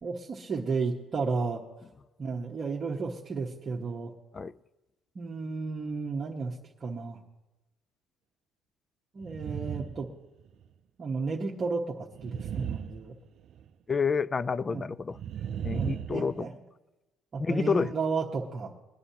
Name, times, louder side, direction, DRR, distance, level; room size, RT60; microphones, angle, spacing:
voice 1, 0.0-1.6 2.2-4.1 5.1-7.2 9.1-10.1 11.0-13.1 14.7-14.8 15.7-16.5 17.3-18.7, right 4 dB, 35° right, 1.1 m, -33 dB
sound 1, 9.2-10.1 10.4-10.6 12.1-13.7 15.1-16.4, right 9 dB, 55° right, 0.5 m, -36 dB
voice 2, 13.9-15.2 15.6-16.5 17.4-17.9, left 5 dB, 25° left, 0.3 m, -29 dB
22.0 x 9.7 x 2.8 m
cardioid pair, 130°, 0 cm